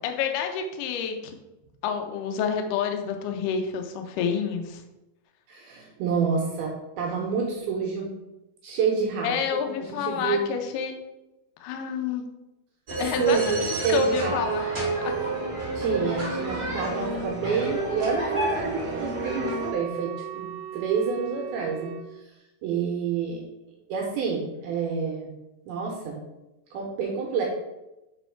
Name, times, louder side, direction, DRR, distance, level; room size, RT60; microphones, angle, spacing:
voice 1, 0.0-1.3 1.8-4.8 9.2-10.9 11.6-12.3 13.0-13.6 13.9-14.6 15.0-15.1, left 7 dB, 85° left, 4 dB, 1.8 m, -28 dB
voice 2, 5.5-8.1 8.6-10.5 13.0-14.7 15.8-22.3 22.6-23.5 23.9-25.3 25.7-26.2 26.7-27.5, right 5 dB, 75° right, -1 dB, 2.6 m, -28 dB
sound 1, 12.9-19.7, right 3 dB, 35° right, 1.3 m, -29 dB
Wind instrument woodwind instrument, 17.8-22.1, right 9 dB, 90° right, 2.7 m, -40 dB
6.7 x 4.5 x 4.6 m, 0.97 s
omnidirectional pair, 4.8 m